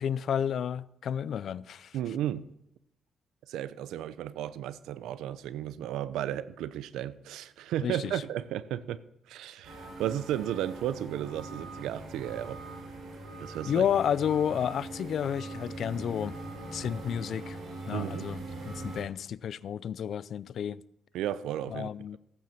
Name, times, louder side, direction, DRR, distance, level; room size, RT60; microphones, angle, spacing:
voice 1, 0.0-2.0 7.8-8.2 13.6-16.4 16.7-17.6 17.9-20.8 21.7-22.2, left 8 dB, 65° left, 0.4 m, -31 dB
voice 2, 1.9-2.5 3.5-9.0 9.3-12.6 13.4-13.9 17.9-18.3 21.1-21.9, right 11 dB, 85° right, 0.6 m, -34 dB
sound 1, 9.6-19.0, right 2 dB, 70° right, 5.4 m, -41 dB
15.5 x 9.1 x 5.9 m
cardioid pair, 90°, 0 cm